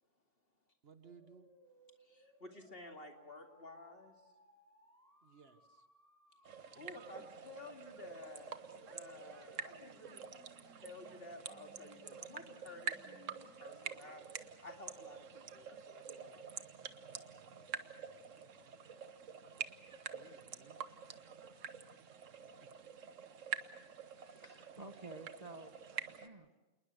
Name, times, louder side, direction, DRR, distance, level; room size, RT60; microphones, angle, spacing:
voice 1, 0.8-1.5 5.2-5.9 17.9-18.8 20.1-20.8, right 6 dB, 50° right, 8 dB, 1.4 m, -62 dB
sound 1, 1.0-20.9, right 1 dB, 10° right, 6.5 m, -67 dB
voice 2, 2.0-4.2 6.7-10.2 10.6-16.5, left 2 dB, 45° left, 3 dB, 2.6 m, -53 dB
sound 2, 6.5-26.3, right 7 dB, 70° right, 1.4 m, -47 dB
voice 3, 24.1-25.8 26.1-26.5, right 2 dB, 30° right, 7 dB, 1.2 m, -52 dB
27.5 x 20.5 x 6.5 m, 1.1 s
omnidirectional pair, 1.4 m